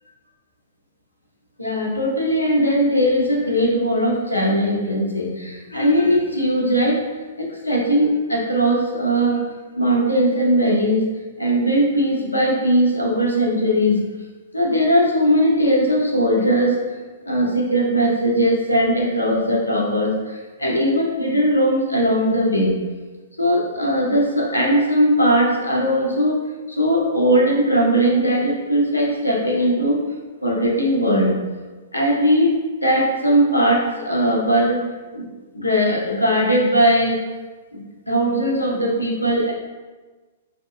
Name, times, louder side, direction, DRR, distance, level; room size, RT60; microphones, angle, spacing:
voice 1, 1.6-7.0 7.4-9.4 9.8-11.1 11.4-14.0 14.5-16.8 17.3-22.7 23.4-30.1 30.4-31.4 31.9-34.8 35.1-35.3 35.5-37.2 37.7-39.5, equal, 85° left, -2 dB, 0.7 m, -19 dB
4.0 x 2.8 x 2.2 m, 1.3 s
figure-of-eight pair, 110°, 0 cm